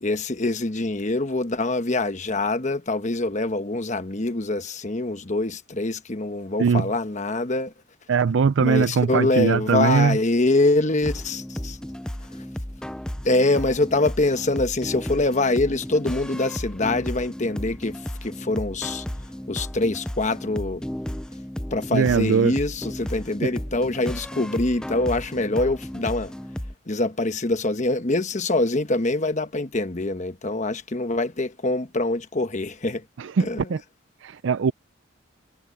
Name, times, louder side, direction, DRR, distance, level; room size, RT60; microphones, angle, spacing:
voice 1, 0.0-7.7 8.6-11.8 13.2-19.0 19.5-20.8 21.7-26.3 26.9-33.0 33.4-33.7, left 2 dB, 35° left, 1.1 m, -24 dB
voice 2, 8.1-10.2 21.9-22.5 23.4-23.5 33.2-33.8 34.2-34.7, right 5 dB, 60° right, 0.4 m, -21 dB
sound 1, 11.0-26.7, equal, 5° left, 0.3 m, -34 dB
head